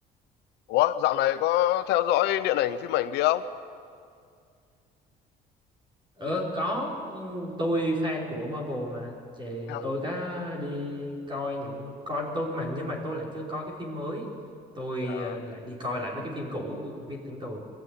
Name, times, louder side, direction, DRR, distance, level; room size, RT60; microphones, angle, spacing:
voice 1, 0.7-3.5 9.7-9.8 15.0-15.4, left 13 dB, 90° left, 13 dB, 0.9 m, -25 dB
voice 2, 6.2-14.3 14.7-17.6, equal, 30° right, -3 dB, 5.2 m, -32 dB
22.5 x 14.5 x 9.8 m, 2.3 s
cardioid pair, 110°, 17 cm